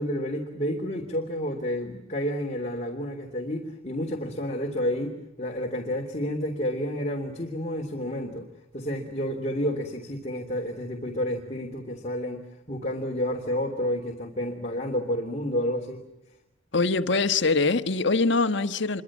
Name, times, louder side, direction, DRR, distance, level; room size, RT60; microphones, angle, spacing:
voice 1, 0.0-8.5 8.7-16.0, equal, 35° left, 3.1 m, -30 dB
voice 2, 16.7-19.0, left 3 dB, 65° left, 1.4 m, -23 dB
27.5 x 24.5 x 7.4 m
head